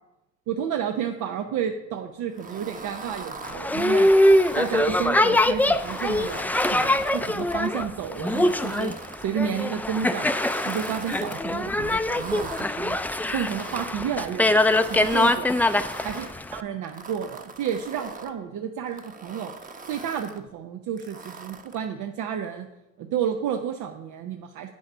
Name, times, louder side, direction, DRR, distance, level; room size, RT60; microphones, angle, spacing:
voice 1, 0.5-4.1 4.6-8.9 9.2-10.3 10.6-13.0 13.3-15.5 16.0-16.3 16.5-19.5 19.9-22.7 23.0-24.7, right 8 dB, 85° right, 5 dB, 0.7 m, -31 dB
sound 1, 2.3-4.9 5.5-7.7 8.2-9.2 9.8-11.4 12.0-12.6 13.3-14.1 14.6-16.3 16.8-18.3 18.9-20.4 21.0-21.9, right 4 dB, 25° right, 0.9 m, -41 dB
Boat Water vehicle, 3.4-16.6, left 1 dB, 5° left, 0.4 m, -23 dB
8.3 x 6.3 x 5.4 m, 0.92 s
cardioid pair, 90°, 30 cm